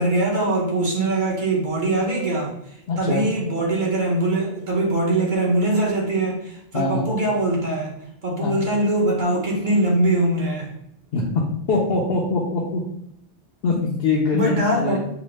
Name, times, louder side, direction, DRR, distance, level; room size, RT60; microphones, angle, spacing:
voice 1, 0.0-2.5 3.0-7.9 8.2-10.7 14.3-15.0, right 2 dB, 50° right, -3 dB, 1.0 m, -22 dB
voice 2, 2.9-3.2 6.7-7.0 8.4-8.5 11.1-11.4 11.7-12.8 13.6-15.0, left 3 dB, 70° left, -3 dB, 0.8 m, -23 dB
4.9 x 2.0 x 3.1 m, 0.77 s
omnidirectional pair, 1.0 m